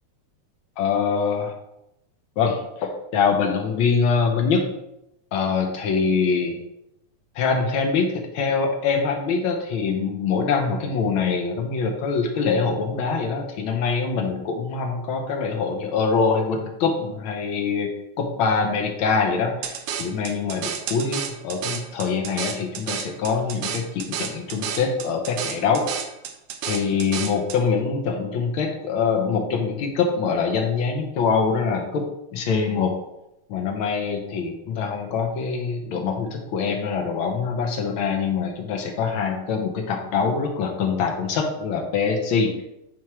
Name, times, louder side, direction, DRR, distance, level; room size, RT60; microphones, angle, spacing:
voice 1, 0.8-1.6 2.4-4.7 5.3-6.6 7.3-17.9 18.2-25.9 26.7-32.0 32.3-32.9 33.5-42.5, left 5 dB, 80° left, 2 dB, 1.1 m, -24 dB
sound 1, 19.6-27.6, right 8 dB, 80° right, 1.3 m, -31 dB
9.0 x 3.0 x 4.6 m, 0.85 s
omnidirectional pair, 3.4 m